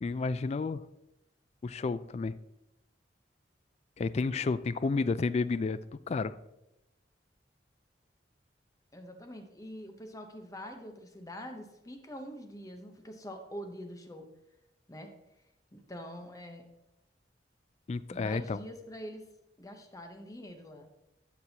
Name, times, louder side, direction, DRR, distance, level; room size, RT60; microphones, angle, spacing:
voice 1, 0.0-0.8 1.6-2.3 4.0-5.8 6.1-6.4 17.9-18.6, left 4 dB, 40° left, 15 dB, 0.3 m, -31 dB
voice 2, 8.9-14.3 14.9-15.1 15.7-16.6 18.1-19.2 19.6-20.9, equal, 20° left, 5 dB, 0.8 m, -45 dB
12.0 x 6.2 x 2.8 m, 0.89 s
head